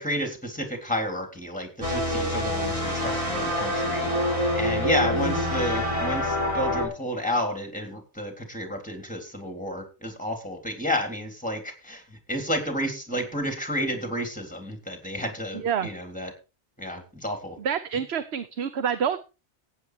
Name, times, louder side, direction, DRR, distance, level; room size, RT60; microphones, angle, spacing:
voice 1, 0.0-4.1 4.5-16.3 16.8-17.6, equal, 5° left, 6 dB, 3.4 m, -31 dB
sound 1, 1.8-6.9, left 1 dB, 30° right, 4.0 m, -26 dB
voice 2, 15.5-15.9 17.6-19.2, right 7 dB, 70° right, 13 dB, 1.1 m, -27 dB
15.0 x 9.3 x 4.6 m, 0.31 s
omnidirectional pair, 1.2 m